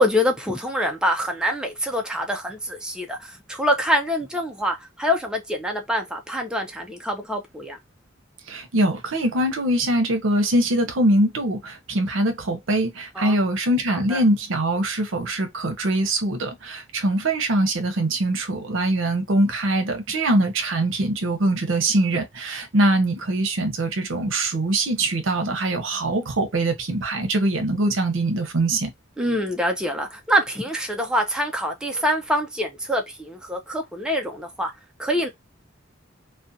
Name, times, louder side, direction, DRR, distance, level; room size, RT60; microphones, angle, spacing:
voice 1, 0.0-7.8 13.2-13.4 14.1-14.2 29.2-34.7 35.0-35.3, equal, 5° right, 0.3 m, -25 dB
voice 2, 8.5-28.9, right 1 dB, 75° right, 0.7 m, -23 dB
2.4 x 2.2 x 2.6 m
head